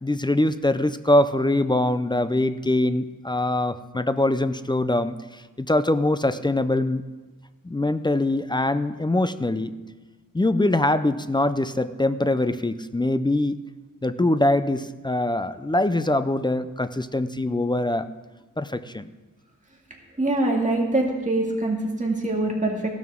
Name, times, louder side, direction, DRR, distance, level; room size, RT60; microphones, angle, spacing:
voice 1, 0.0-7.1 7.6-9.8 10.3-13.6 14.0-18.1 18.6-19.1, left 1 dB, 15° left, 12 dB, 0.3 m, -23 dB
voice 2, 20.2-22.9, right 2 dB, 20° right, -1 dB, 2.1 m, -24 dB
15.5 x 12.5 x 3.6 m, 1.2 s
wide cardioid pair, 145°, 34 cm